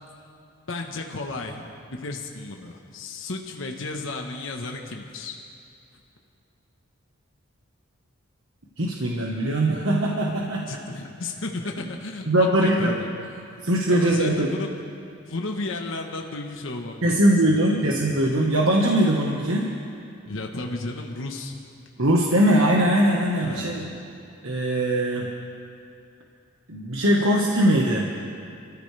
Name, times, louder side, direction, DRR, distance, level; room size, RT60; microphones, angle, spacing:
voice 1, 0.7-5.4 10.7-13.4 13.9-14.7 15.2-17.8 20.3-21.6 23.4-24.0, left 2 dB, 80° left, 2 dB, 1.2 m, -33 dB
voice 2, 8.8-10.6 12.3-12.9 13.6-14.5 17.0-19.7 22.0-23.8 24.4-25.3 26.7-28.1, right 1 dB, 90° right, -1 dB, 1.4 m, -21 dB
29.0 x 14.0 x 3.4 m, 2.6 s
head